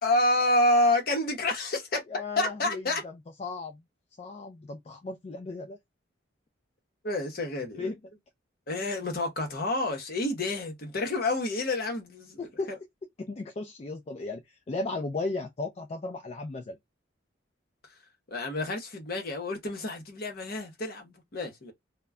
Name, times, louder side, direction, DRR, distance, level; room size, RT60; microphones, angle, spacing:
voice 1, 0.0-2.0 2.4-3.0 7.0-7.9 8.7-12.4 12.7-12.8 18.3-21.7, left 1 dB, 50° left, 0.9 m, -28 dB
voice 2, 2.1-2.8 3.4-3.8 4.2-5.8 7.8-8.0 12.4-12.7 13.2-16.8, left 3 dB, 35° left, 0.3 m, -35 dB
2.2 x 2.1 x 3.4 m
head